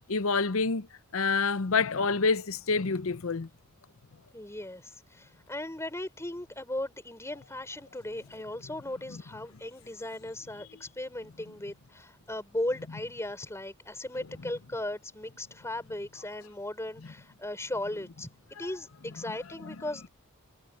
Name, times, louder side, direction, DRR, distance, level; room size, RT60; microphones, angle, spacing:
voice 1, 0.1-0.9 1.1-3.5 9.1-9.2, left 4 dB, 70° left, 0.7 m, -27 dB
voice 2, 4.3-20.1, left 1 dB, 15° left, 4.5 m, -37 dB
head